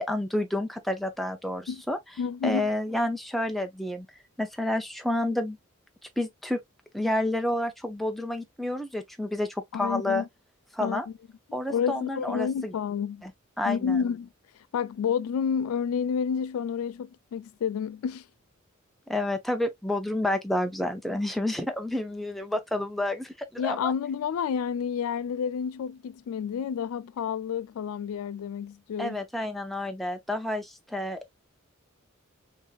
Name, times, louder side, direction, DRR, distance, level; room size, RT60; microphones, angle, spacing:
voice 1, 0.0-2.0 2.4-4.1 4.4-5.6 6.2-6.6 6.9-10.2 10.7-11.1 11.5-12.7 13.2-13.3 13.6-14.0 19.1-23.9 29.0-31.3, left 1 dB, ahead, 0.4 m, -29 dB
voice 2, 2.2-2.7 9.7-10.3 10.8-11.1 11.7-13.2 13.6-14.3 14.7-18.3 23.6-29.2, left 7 dB, 85° left, 0.3 m, -30 dB
3.5 x 2.7 x 2.3 m
head